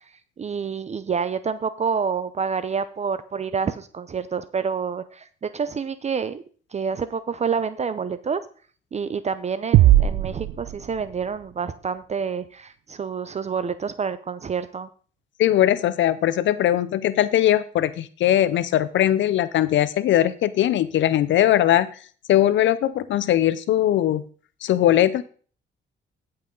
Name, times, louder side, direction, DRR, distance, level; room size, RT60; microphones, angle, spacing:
voice 1, 0.4-6.4 6.7-8.4 8.9-14.9, right 6 dB, 35° right, 13 dB, 0.6 m, -28 dB
sound 1, 9.7-11.5, right 14 dB, 80° right, 0.6 m, -19 dB
voice 2, 15.4-21.9 22.3-24.2 24.6-25.2, left 12 dB, 70° left, 15 dB, 0.5 m, -20 dB
15.0 x 5.7 x 3.8 m, 0.42 s
cardioid pair, 90°, 20 cm